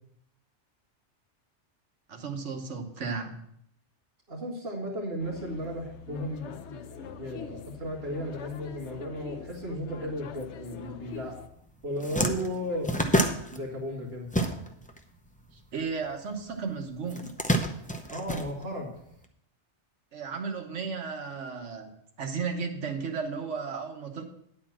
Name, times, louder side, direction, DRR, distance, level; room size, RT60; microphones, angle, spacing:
voice 1, 2.1-3.4 15.7-17.3 20.1-21.9 22.2-24.2, right 5 dB, 80° right, 4 dB, 1.4 m, -34 dB
voice 2, 4.3-11.4 11.8-13.0 13.5-14.3 18.1-18.9, equal, 55° right, -10 dB, 2.3 m, -35 dB
sound 1, 5.2-11.5, left 8 dB, 75° left, 0.9 m, -44 dB
sound 2, 11.4-11.5 11.8-15.0 15.2-16.4 17.1-19.1, right 1 dB, 10° left, 0.6 m, -28 dB
9.9 x 4.4 x 7.3 m, 0.73 s
omnidirectional pair, 1.2 m